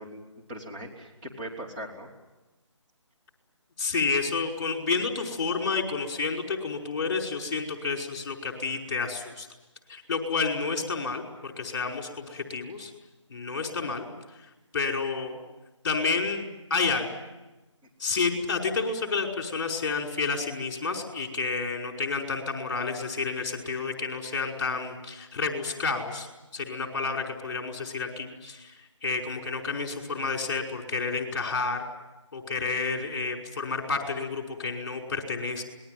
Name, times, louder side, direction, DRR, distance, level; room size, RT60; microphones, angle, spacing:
voice 1, 0.0-2.1, right 1 dB, 20° right, -3 dB, 3.0 m, -40 dB
voice 2, 3.8-9.5 9.9-12.9 13.3-14.1 14.7-15.4 15.8-17.1 18.0-26.3 26.5-31.8 32.3-35.6, left 4 dB, 40° left, 3 dB, 5.1 m, -30 dB
26.5 x 21.0 x 9.3 m, 1.1 s
figure-of-eight pair, 165°, 16 cm